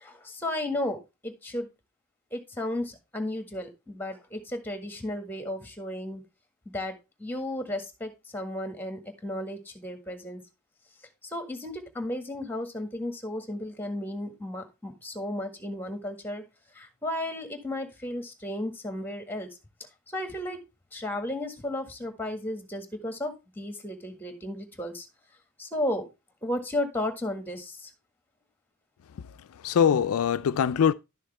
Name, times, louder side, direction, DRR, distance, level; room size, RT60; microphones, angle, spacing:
voice 1, 0.0-1.7 2.3-6.2 6.7-10.4 11.2-16.4 16.7-19.5 20.1-20.6 20.9-25.1 25.6-26.0 26.4-27.9, left 1 dB, 10° left, 1.6 m, -34 dB
voice 2, 29.1-30.9, left 8 dB, 80° left, 0.4 m, -24 dB
11.5 x 6.5 x 3.3 m
head